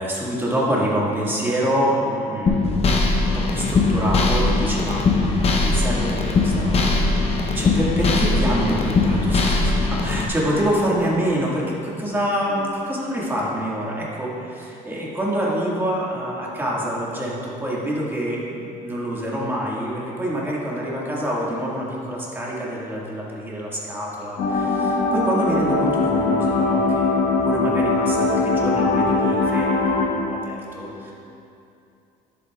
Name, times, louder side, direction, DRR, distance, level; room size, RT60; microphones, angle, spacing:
voice 1, 0.0-5.0 5.6-31.1, equal, 10° right, -5 dB, 1.8 m, -26 dB
sound 1, 2.5-10.3, left 3 dB, 35° left, 0.7 m, -20 dB
sound 2, 24.4-30.1, left 3 dB, 90° left, 1.3 m, -21 dB
11.0 x 7.6 x 2.4 m, 2.7 s
cardioid pair, 110°, 17 cm